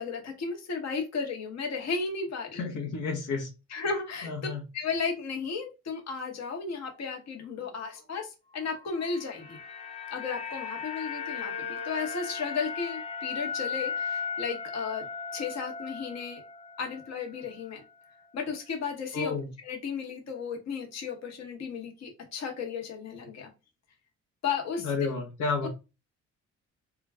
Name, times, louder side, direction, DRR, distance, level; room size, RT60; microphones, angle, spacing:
voice 1, 0.0-2.6 3.7-4.3 4.7-9.6 10.1-15.1 15.3-16.4 16.8-17.8 18.3-19.3 19.6-23.5 24.4-25.1 25.6-25.7, left 5 dB, 60° left, 1.1 m, -34 dB
voice 2, 2.5-3.5 4.2-4.6 19.1-19.5 24.8-25.7, left 4 dB, 85° left, 1.0 m, -31 dB
sound 1, 8.9-17.2 17.5-17.7, left 6 dB, 20° left, 0.5 m, -37 dB
3.8 x 2.3 x 3.3 m
cardioid pair, 90°, 30 cm